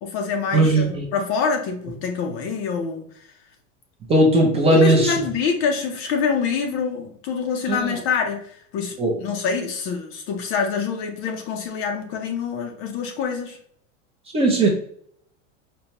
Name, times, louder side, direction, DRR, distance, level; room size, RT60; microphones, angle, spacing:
voice 1, 0.0-3.1 4.7-13.6, left 5 dB, 35° left, 4 dB, 0.5 m, -26 dB
voice 2, 0.5-1.0 4.1-5.1 7.7-8.0 9.0-9.1 14.3-14.7, right 1 dB, 15° right, 0 dB, 0.5 m, -17 dB
4.4 x 2.1 x 2.8 m, 0.64 s
supercardioid pair, 145°, 38 cm